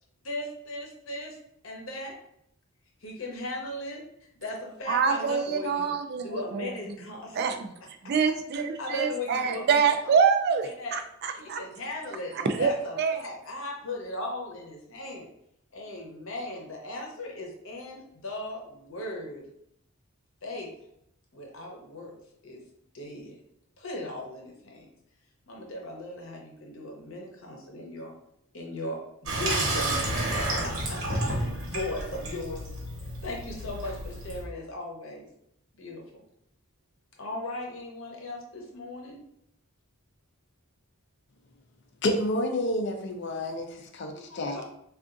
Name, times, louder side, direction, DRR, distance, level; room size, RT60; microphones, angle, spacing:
voice 1, 0.2-1.4 1.6-2.2 3.0-4.0 4.4-5.9 6.2-7.4 8.8-10.1 10.6-11.0 11.4-15.3 15.7-19.4 20.4-20.7 21.3-22.1 22.4-22.6 22.9-23.4 23.8-24.9 25.5-28.1 28.5-32.7 33.2-35.3 35.8-36.2 37.2-39.2 44.1-44.6, left 1 dB, 75° left, 0 dB, 0.8 m, -38 dB
voice 2, 4.9-6.7 7.3-7.7 8.0-11.6 12.6-12.7 13.0-13.2, right 6 dB, 50° right, 6 dB, 0.3 m, -25 dB
Water tap faucet / Sink (filling or washing), 29.3-34.4, right 1 dB, 85° right, 1.1 m, -30 dB
voice 3, 42.0-44.6, left 1 dB, 60° left, 5 dB, 0.5 m, -29 dB
3.6 x 2.5 x 2.5 m, 0.74 s
head